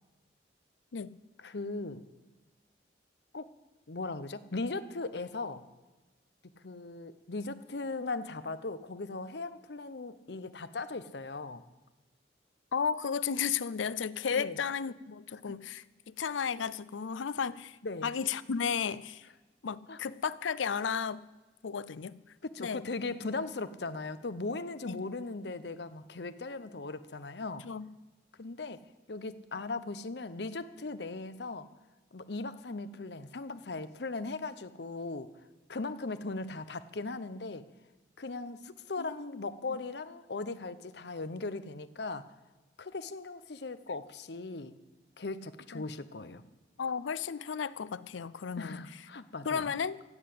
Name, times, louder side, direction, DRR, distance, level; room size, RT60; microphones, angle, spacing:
voice 1, 1.4-2.0 3.3-3.5 3.9-5.6 6.6-11.6 14.3-14.6 15.5-15.6 17.8-18.1 19.9-20.0 22.4-27.6 28.4-28.8 29.1-31.7 32.1-35.3 35.7-37.6 38.2-42.2 42.8-44.7 45.2-46.4 48.6-49.7, left 3 dB, 60° left, 12 dB, 0.8 m, -38 dB
voice 2, 12.7-17.8 18.0-19.2 19.6-21.2 21.6-22.2 22.6-22.8 24.9-25.0 27.6-27.9 39.0-39.4 45.7-45.8 46.8-49.0 49.4-50.0, left 6 dB, 90° left, 18 dB, 0.5 m, -34 dB
15.5 x 7.9 x 8.5 m, 1.2 s
head